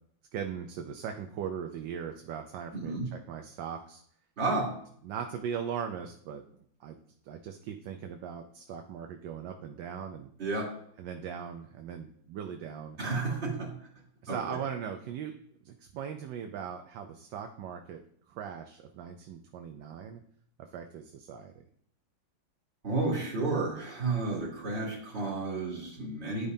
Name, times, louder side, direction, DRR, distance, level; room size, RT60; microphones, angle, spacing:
voice 1, 0.3-4.0 4.5-4.6 5.0-6.4 6.8-7.0 7.2-10.3 11.0-13.0 14.2-15.3 15.6-18.0 18.3-20.2 20.7-21.6, right 8 dB, 75° right, 5 dB, 1.3 m, -39 dB
voice 2, 2.7-3.1 4.4-4.7 10.4-10.7 13.0-13.7 14.3-14.6 22.8-26.5, right 3 dB, 35° right, -5 dB, 3.3 m, -31 dB
11.5 x 5.1 x 2.7 m, 0.64 s
omnidirectional pair, 2.1 m